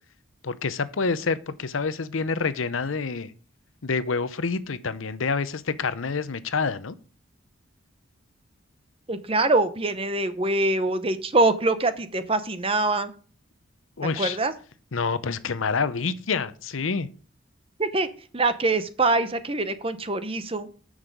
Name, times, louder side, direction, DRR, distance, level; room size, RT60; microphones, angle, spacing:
voice 1, 0.4-3.3 3.8-6.9 14.0-14.4 14.9-17.1, left 4 dB, 75° left, 14 dB, 0.7 m, -27 dB
voice 2, 9.1-13.1 14.2-14.5 17.8-18.1 18.3-20.7, right 2 dB, 25° right, 11 dB, 0.8 m, -24 dB
9.8 x 6.4 x 5.2 m, 0.39 s
head